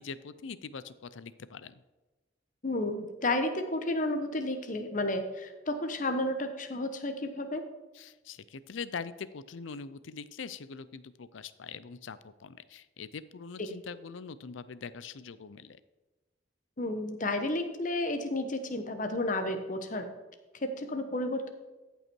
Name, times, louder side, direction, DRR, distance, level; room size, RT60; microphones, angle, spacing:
voice 1, 0.0-1.7 7.9-15.8, left 5 dB, 85° left, 15 dB, 0.5 m, -43 dB
voice 2, 2.6-7.6 13.6-13.7 16.8-20.1 20.6-21.5, left 1 dB, 40° left, 7 dB, 1.0 m, -32 dB
14.5 x 5.5 x 4.5 m, 1.2 s
head